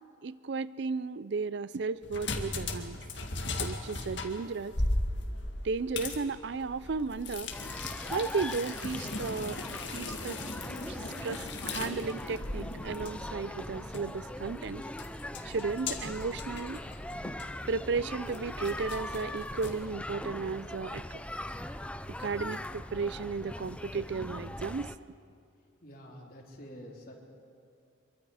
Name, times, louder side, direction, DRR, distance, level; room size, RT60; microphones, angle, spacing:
voice 1, 0.2-3.0 3.6-4.8 5.6-7.5 8.1-10.4 10.9-14.9 15.4-16.8 17.7-21.0 22.2-24.9, right 4 dB, 60° right, 17 dB, 0.4 m, -34 dB
sound 1, 2.0-19.9, left 2 dB, 65° left, 2.0 m, -38 dB
sound 2, 7.5-25.0, left 1 dB, 5° left, 0.5 m, -41 dB
voice 2, 25.8-27.1, equal, 45° left, -1 dB, 3.6 m, -48 dB
25.5 x 23.5 x 4.9 m, 2.5 s
head